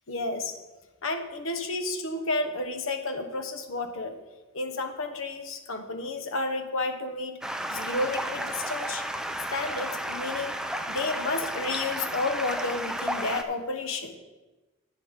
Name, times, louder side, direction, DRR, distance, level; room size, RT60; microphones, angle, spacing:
voice 1, 0.1-0.6 1.0-4.2 4.5-7.3 7.7-9.0 9.5-10.6 10.9-14.2, left 2 dB, 75° left, 6 dB, 1.1 m, -31 dB
Stream, 7.4-13.4, right 1 dB, 5° right, 0.4 m, -33 dB
11.0 x 9.1 x 3.7 m, 1.1 s
head